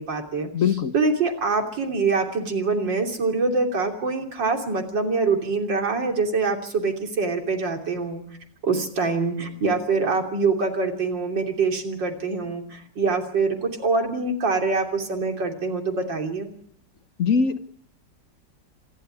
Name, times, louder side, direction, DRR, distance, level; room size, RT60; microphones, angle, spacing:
voice 1, 0.0-0.5 0.9-8.2 8.6-16.5, right 4 dB, 90° right, 3 dB, 3.8 m, -24 dB
voice 2, 0.5-0.9 17.2-17.6, left 6 dB, 50° left, 11 dB, 1.3 m, -21 dB
26.5 x 12.5 x 9.9 m, 0.66 s
omnidirectional pair, 1.9 m